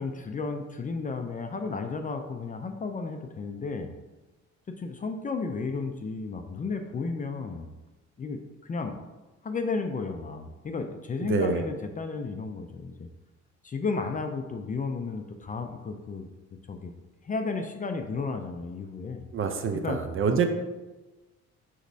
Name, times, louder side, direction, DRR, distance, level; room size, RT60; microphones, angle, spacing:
voice 1, 0.0-3.9 4.8-7.7 8.2-9.0 9.4-13.1 13.6-16.3 16.7-16.9 17.2-19.2 19.8-20.0, left 4 dB, 25° left, 6 dB, 0.4 m, -33 dB
voice 2, 11.3-11.6 19.3-20.5, right 5 dB, 45° right, 6 dB, 0.5 m, -26 dB
6.3 x 3.0 x 2.7 m, 1.1 s
cardioid pair, 90°, 30 cm